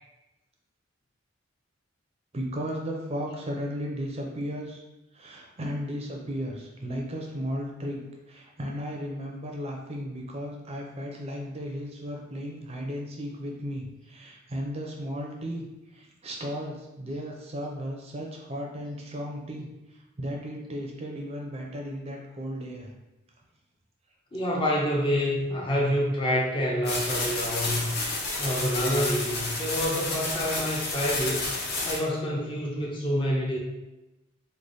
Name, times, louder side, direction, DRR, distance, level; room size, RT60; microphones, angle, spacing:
voice 1, 2.3-4.8 5.1-8.0 8.3-22.9, equal, 30° right, 0 dB, 0.5 m, -35 dB
voice 2, 24.3-27.9 28.4-31.5 31.8-33.6, equal, 25° left, -3 dB, 0.5 m, -27 dB
sound 1, 26.8-32.0, left 2 dB, 55° left, 0.8 m, -30 dB
3.2 x 2.1 x 3.9 m, 0.99 s
head